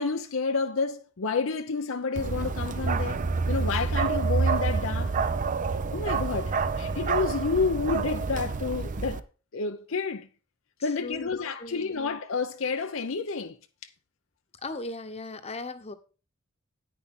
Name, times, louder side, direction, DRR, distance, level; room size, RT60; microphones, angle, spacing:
voice 1, 0.0-5.2 5.9-9.2 9.5-10.3 10.8-13.6, left 4 dB, 80° left, 0.7 m, -30 dB
Bark, 2.2-9.2, right 4 dB, 40° right, 0.5 m, -28 dB
voice 2, 11.0-11.3 11.6-11.9 14.6-15.9, left 2 dB, 30° left, 1.0 m, -37 dB
9.5 x 9.3 x 3.7 m
head